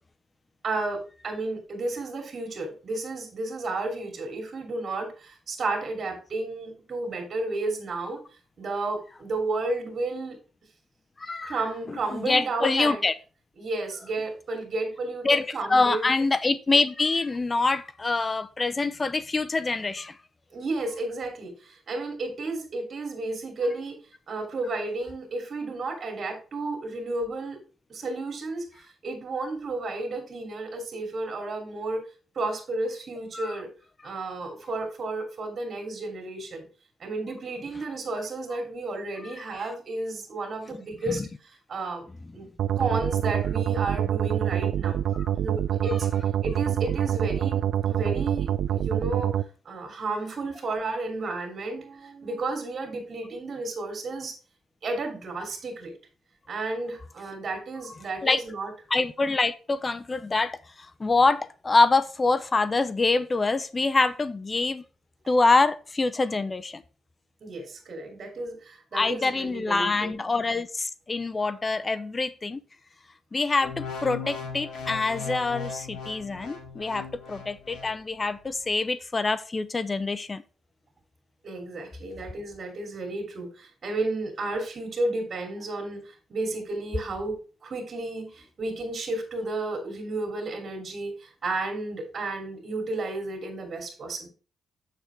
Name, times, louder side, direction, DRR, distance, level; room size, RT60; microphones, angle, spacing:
voice 1, 0.6-8.2 8.6-10.4 11.4-13.0 13.6-16.1 20.5-24.0 24.3-27.6 27.9-32.0 32.3-33.7 34.0-36.7 37.0-41.2 41.7-42.1 42.3-42.5 42.8-45.0 45.3-46.1 46.4-49.3 49.6-54.4 54.8-55.9 56.5-58.7 67.4-70.1 81.4-87.4 87.6-94.3, right 2 dB, 50° right, 2.8 m, -32 dB
voice 2, 11.2-11.6 11.9-13.1 15.2-15.4 15.7-20.2 33.3-33.6 39.2-39.7 41.1-41.3 45.1-45.3 58.2-58.4 58.9-64.8 65.3-66.8 68.9-72.6 73.3-80.4, left 3 dB, 30° left, 0.6 m, -25 dB
sound 1, 42.6-49.4, right 10 dB, 80° right, 0.4 m, -26 dB
sound 2, 73.6-77.9 78.5-78.7, left 5 dB, 80° left, 2.2 m, -37 dB
7.3 x 6.7 x 3.3 m
cardioid pair, 85°, 0 cm